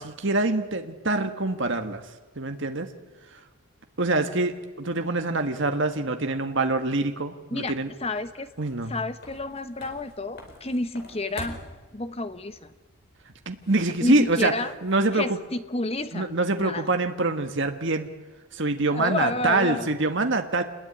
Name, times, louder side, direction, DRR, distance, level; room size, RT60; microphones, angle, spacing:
voice 1, 0.0-2.0 2.4-2.9 4.0-7.9 8.6-8.9 13.4-14.5 14.8-15.4 16.1-18.1 18.5-20.6, right 2 dB, 55° right, 6 dB, 1.5 m, -25 dB
sound 1, 7.7-15.4, left 1 dB, 45° left, 4.8 m, -47 dB
voice 2, 8.0-8.5 8.9-11.6 11.9-12.7 14.0-14.7 15.1-16.3 16.6-16.9 18.9-19.9, left 2 dB, 25° left, 11 dB, 1.1 m, -30 dB
27.5 x 20.5 x 9.9 m, 1.3 s
head